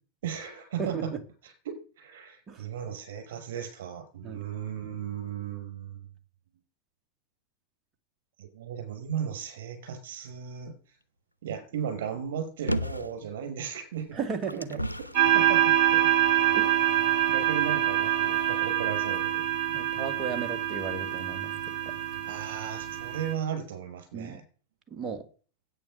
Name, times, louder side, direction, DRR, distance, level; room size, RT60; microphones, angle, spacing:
voice 1, 0.2-1.1 1.4-6.1 8.4-11.0 11.4-14.2 14.5-14.6 15.3-16.1 16.5-16.6 17.3-19.4 22.3-24.4, right 8 dB, 55° right, 5.8 m, -36 dB
voice 2, 0.8-1.2 2.5-2.7 4.2-4.4 14.1-14.8 16.6-16.7 19.7-21.5 21.9-22.0 24.1-24.4 24.9-25.3, right 5 dB, 25° right, 2.1 m, -35 dB
sound 1, 12.7-13.2 14.0-15.3 16.1-16.2, equal, 90° right, 0.7 m, -32 dB
sound 2, 15.1-23.3, right 12 dB, 40° right, 4.2 m, -25 dB
10.0 x 9.1 x 6.7 m
figure-of-eight pair, 90°, 0 cm